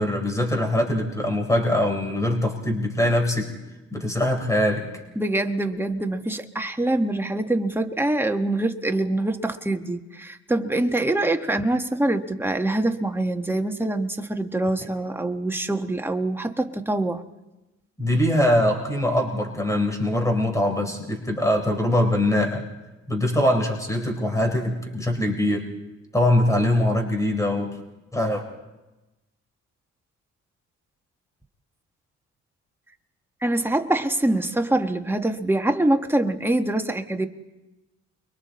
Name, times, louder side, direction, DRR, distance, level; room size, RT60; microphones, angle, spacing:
voice 1, 0.0-3.5 3.9-4.9 18.0-22.6 23.1-25.7 26.1-27.8 28.1-28.4, left 1 dB, 10° left, 3 dB, 4.1 m, -22 dB
voice 2, 5.2-17.2 33.4-37.3, right 1 dB, 5° right, 5 dB, 1.3 m, -24 dB
29.5 x 23.0 x 4.3 m, 1.1 s
cardioid pair, 90°, 30 cm